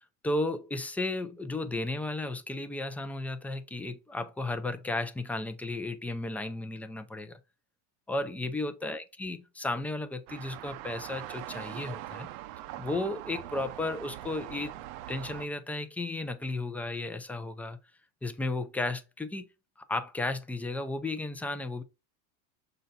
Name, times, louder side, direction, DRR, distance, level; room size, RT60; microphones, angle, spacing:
voice 1, 0.2-7.4 8.1-12.3 12.8-14.8 15.1-17.8 18.2-19.4 19.9-21.8, left 2 dB, 5° left, 0.5 m, -34 dB
sound 1, 10.3-15.5, right 14 dB, 65° right, 0.7 m, -42 dB
6.7 x 4.0 x 4.2 m
supercardioid pair, 135°, 45 cm